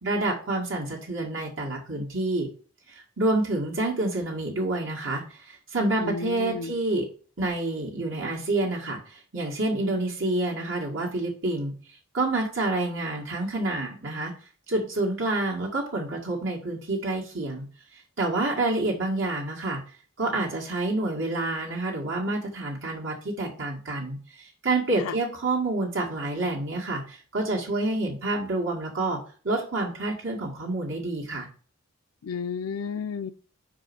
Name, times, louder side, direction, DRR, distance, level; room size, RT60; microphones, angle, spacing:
voice 1, 0.0-2.5 2.9-7.1 7.4-11.7 12.1-14.3 14.7-17.6 18.2-19.8 20.2-29.2 29.4-31.5, right 2 dB, 65° right, 1.8 m, -28 dB
voice 2, 6.0-6.7 25.0-25.1 32.2-33.3, left 5 dB, 85° left, 0.5 m, -32 dB
5.3 x 4.7 x 6.0 m
head